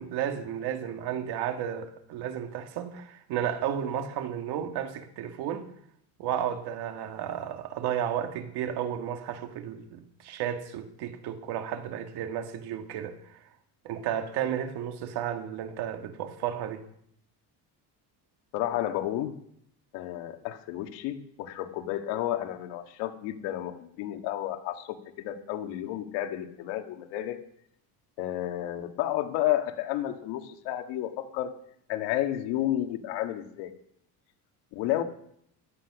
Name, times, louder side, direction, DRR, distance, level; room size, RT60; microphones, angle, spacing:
voice 1, 0.0-5.6 6.2-13.4 13.8-16.8, right 9 dB, 65° right, 2.1 m, -33 dB
voice 2, 18.5-19.4 19.9-27.4 28.2-31.5 31.9-33.7 34.7-35.0, left 13 dB, 85° left, 1.8 m, -31 dB
16.5 x 12.0 x 6.1 m
cardioid pair, 145°, 41 cm